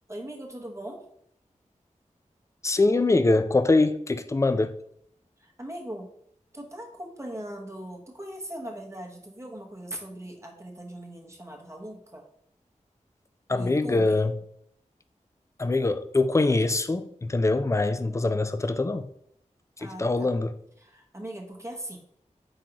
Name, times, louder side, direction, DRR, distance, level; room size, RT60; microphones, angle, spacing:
voice 1, 0.1-1.0 5.4-6.1 6.5-12.2 13.5-14.3 19.8-20.3 20.8-22.0, right 1 dB, 20° right, 0.9 m, -39 dB
voice 2, 2.6-4.8 13.5-14.3 15.6-19.1 19.8-20.5, left 2 dB, 20° left, 0.3 m, -23 dB
4.8 x 3.7 x 2.9 m
wide cardioid pair, 55°, 13 cm